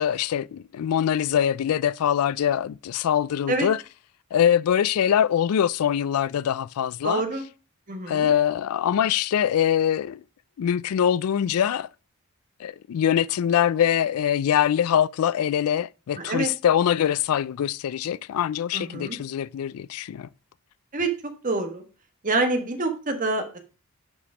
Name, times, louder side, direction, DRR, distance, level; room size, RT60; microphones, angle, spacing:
voice 1, 0.0-3.8 4.3-7.2 8.1-10.2 10.6-11.9 12.6-20.3, left 9 dB, 80° left, 0.3 m, -23 dB
voice 2, 7.0-7.4 7.9-8.3 16.2-16.5 18.7-19.2 20.9-21.1 21.4-21.8 22.2-23.6, right 2 dB, 35° right, 1.5 m, -26 dB
8.3 x 5.2 x 4.9 m
head